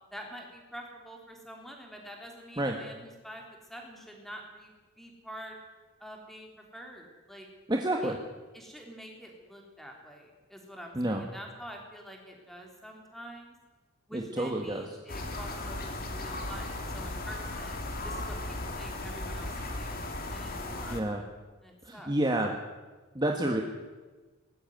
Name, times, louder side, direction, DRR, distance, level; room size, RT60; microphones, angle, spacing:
voice 1, 0.1-3.4 3.7-5.6 6.0-7.5 8.0-8.2 8.5-13.6 14.1-17.8 18.0-21.1 21.6-22.1, equal, ahead, 1 dB, 3.6 m, -46 dB
voice 2, 7.7-8.2 10.9-11.2 14.1-14.8 20.9-21.2 21.8-22.5 23.1-23.6, right 1 dB, 20° right, 1 dB, 1.6 m, -29 dB
sound 1, 15.1-21.0, left 2 dB, 40° left, 2.6 m, -36 dB
20.0 x 14.0 x 9.3 m, 1.3 s
head